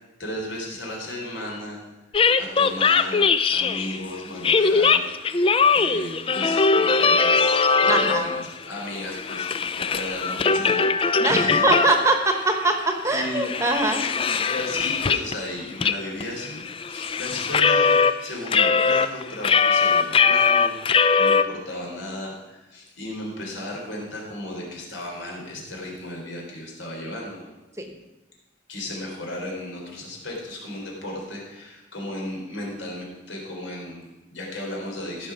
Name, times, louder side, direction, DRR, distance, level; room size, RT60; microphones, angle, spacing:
voice 1, 0.2-1.8 2.4-11.6 13.1-13.5 14.1-27.4 28.7-35.3, left 1 dB, 80° left, -1 dB, 3.7 m, -35 dB
sound 1, 2.1-4.0 4.4-8.5 8.8-12.2 12.6-12.7 13.1-15.4 15.8-15.9 16.2-18.1 18.5-21.4, left 5 dB, 30° left, 0.3 m, -21 dB
voice 2, 7.9-8.3 11.2-14.0 27.8-27.9, right 2 dB, 15° right, 5 dB, 1.1 m, -22 dB
15.0 x 6.3 x 6.0 m, 1.1 s
head